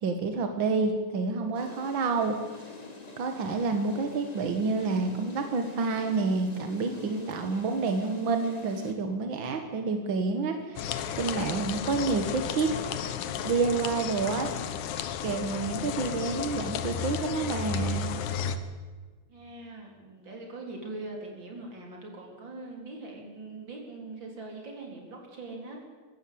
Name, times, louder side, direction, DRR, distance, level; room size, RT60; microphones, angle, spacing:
voice 1, 0.0-2.6 3.2-10.9 11.2-12.7 13.4-14.8 15.2-18.1, right 4 dB, 55° right, 5 dB, 1.4 m, -29 dB
sound 1, 1.5-8.9, left 3 dB, 25° left, 0.9 m, -46 dB
sound 2, 10.8-18.6, left 8 dB, 70° left, 2.3 m, -33 dB
voice 2, 19.3-25.8, right 2 dB, 30° right, 0 dB, 4.4 m, -42 dB
24.0 x 13.5 x 8.6 m, 1.4 s
omnidirectional pair, 4.0 m